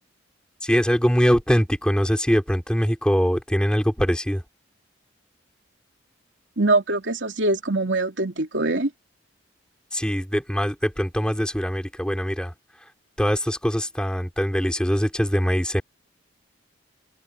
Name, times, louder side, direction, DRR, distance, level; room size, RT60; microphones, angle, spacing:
voice 1, 0.6-4.4 9.9-12.5 13.2-15.8, equal, 5° left, 5.2 m, -22 dB
voice 2, 6.6-8.9, right 2 dB, 70° right, 3.0 m, -23 dB
open air
head